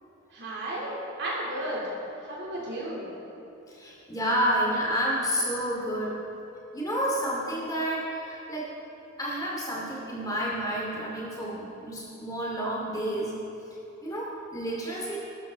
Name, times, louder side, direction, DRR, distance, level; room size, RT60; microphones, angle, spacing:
voice 1, 0.3-1.8 2.2-3.1, right 1 dB, 60° right, -5 dB, 3.5 m, -33 dB
voice 2, 3.7-6.2 6.7-8.7 9.2-13.3 14.0-15.2, equal, 20° left, -5 dB, 2.6 m, -30 dB
21.0 x 13.0 x 4.0 m, 3.0 s
head